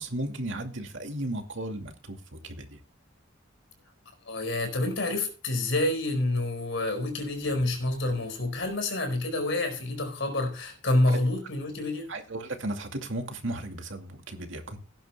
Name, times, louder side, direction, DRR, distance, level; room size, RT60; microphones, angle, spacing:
voice 1, 0.0-2.8 11.1-11.2 12.1-14.8, right 1 dB, 65° right, 2.4 m, -35 dB
voice 2, 4.3-12.1, left 2 dB, 65° left, 4.7 m, -28 dB
17.5 x 11.0 x 2.3 m
head